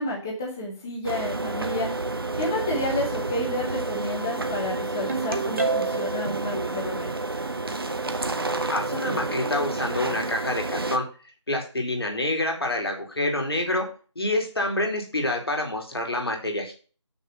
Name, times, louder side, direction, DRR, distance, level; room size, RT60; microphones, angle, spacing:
voice 1, 0.0-1.9 2.4-7.1, left 1 dB, 5° left, -2 dB, 0.7 m, -30 dB
sound 1, 1.0-11.0, right 2 dB, 50° right, 0.9 m, -30 dB
Ringtone, 5.1-6.3, right 4 dB, 30° right, 1.2 m, -27 dB
voice 2, 8.7-11.0 11.5-13.9 14.1-16.7, left 1 dB, 55° left, 2 dB, 3.0 m, -27 dB
7.3 x 6.3 x 5.5 m, 0.37 s
figure-of-eight pair, 165°, 16 cm